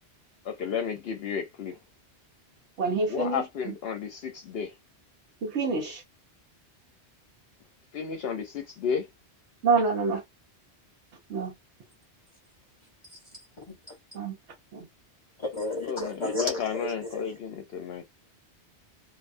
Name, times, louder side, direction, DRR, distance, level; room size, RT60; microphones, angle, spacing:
voice 1, 0.4-1.8 3.1-4.7 7.9-9.1 15.8-18.0, left 7 dB, 65° left, 0.8 m, -32 dB
voice 2, 2.8-3.7 5.4-6.0 9.6-10.2 11.3-11.5 14.1-14.3 14.7-14.9, right 4 dB, 85° right, 1.0 m, -27 dB
voice 3, 15.4-17.2, left 2 dB, 30° left, 0.7 m, -32 dB
2.6 x 2.2 x 2.5 m
omnidirectional pair, 1.2 m